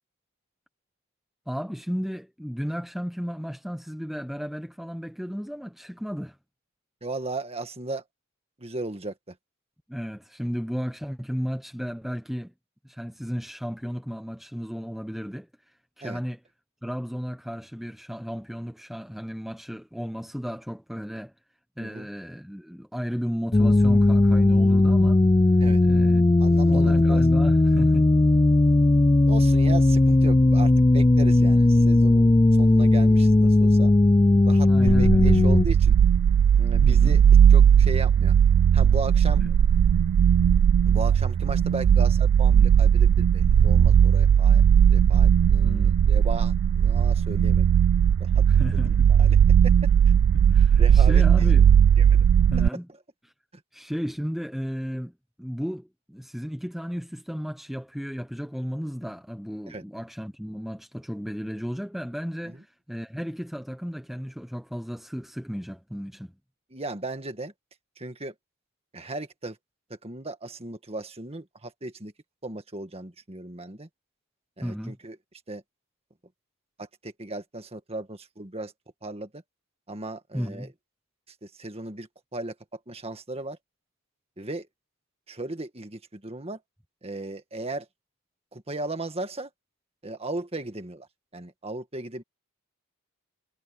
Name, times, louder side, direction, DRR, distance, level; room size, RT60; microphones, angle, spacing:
voice 1, 1.5-6.4 9.9-12.5 12.8-15.5 16.0-16.4 16.8-21.3 21.8-25.2 25.8-26.3 26.6-28.1 32.4-32.5 34.6-35.3 36.8-37.2 39.4-39.5 45.6-46.1 48.5-49.1 50.3-51.7 52.5-52.9 53.7-55.1 55.4-66.3 74.6-75.0 80.3-80.7, equal, ahead, 1.1 m, -34 dB
voice 2, 7.0-8.0 8.6-9.4 16.0-16.2 21.8-22.1 25.6-25.8 26.4-27.2 29.3-34.0 34.4-36.0 36.6-37.2 37.5-38.3 38.7-39.4 40.9-44.6 44.9-47.7 48.2-48.4 48.7-49.4 49.6-49.7 50.8-51.5 52.0-52.3 59.7-59.8 62.4-62.6 66.7-67.5 68.0-68.3 68.9-69.6 69.9-72.1 72.4-73.9 74.6-75.2 75.5-75.6 76.8-78.7 79.0-79.4 79.9-80.7 81.4-83.6 84.4-84.7 85.3-86.6 87.0-87.9 88.5-89.5 90.0-91.1 91.3-92.2, right 2 dB, 25° right, 1.9 m, -36 dB
sound 1, 23.5-35.6, left 2 dB, 20° left, 0.4 m, -18 dB
sound 2, 34.9-52.7, right 8 dB, 80° right, 0.3 m, -18 dB
head